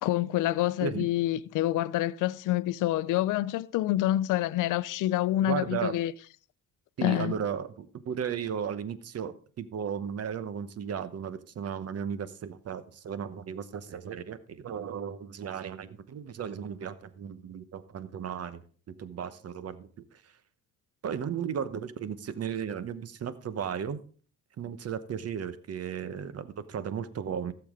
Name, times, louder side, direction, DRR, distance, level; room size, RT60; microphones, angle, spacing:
voice 1, 0.0-6.1 7.0-7.3, left 14 dB, 90° left, 0.5 m, -27 dB
voice 2, 5.4-6.0 7.0-18.6 19.0-19.9 21.0-24.0 24.6-27.5, right 8 dB, 55° right, 1.0 m, -35 dB
15.5 x 7.0 x 3.7 m
cardioid pair, 90°, 30 cm